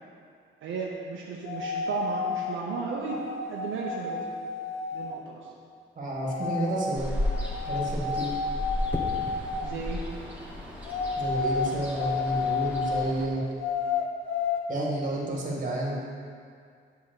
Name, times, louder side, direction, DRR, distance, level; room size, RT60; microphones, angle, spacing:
voice 1, 0.6-4.3 4.9-5.5 9.6-10.0, right 4 dB, 80° right, -3 dB, 0.8 m, -34 dB
sound 1, 1.4-2.6 3.1-5.2 6.3-6.9 7.2-9.8 10.8-13.1 13.6-14.6, left 5 dB, 85° left, 0.6 m, -31 dB
voice 2, 6.0-7.1 7.7-8.3 11.2-13.5 14.7-16.0, right 1 dB, 40° right, -3 dB, 2.0 m, -30 dB
Ocean, 6.9-13.3, left 1 dB, 5° right, 1.8 m, -34 dB
sound 2, 8.9-9.4 11.4-11.7, left 1 dB, 10° left, 1.0 m, -36 dB
7.3 x 3.7 x 6.6 m, 2.2 s
cardioid pair, 90°, 20 cm